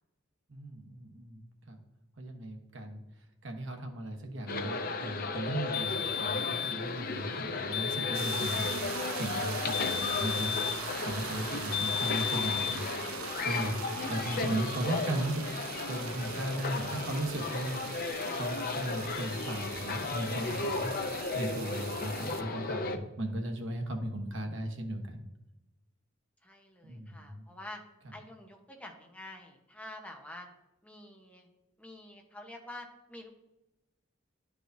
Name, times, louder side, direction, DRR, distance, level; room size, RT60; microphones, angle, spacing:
voice 1, 0.5-1.8 2.2-8.8 9.2-15.4 15.8-20.9 21.3-25.2 26.8-27.5, right 1 dB, 65° right, 3 dB, 1.2 m, -37 dB
sound 1, 4.5-23.0, left 3 dB, 45° left, 0.6 m, -35 dB
sound 2, 5.7-6.8 7.7-8.8 9.7-10.9 11.7-12.8, left 10 dB, 90° left, 0.9 m, -34 dB
sound 3, 8.1-22.4, right 10 dB, 85° right, 0.4 m, -42 dB
voice 2, 26.4-27.8 28.1-30.5 30.8-31.5 31.8-33.3, left 1 dB, 5° left, 2 dB, 0.9 m, -48 dB
11.5 x 4.8 x 2.7 m, 1.0 s
head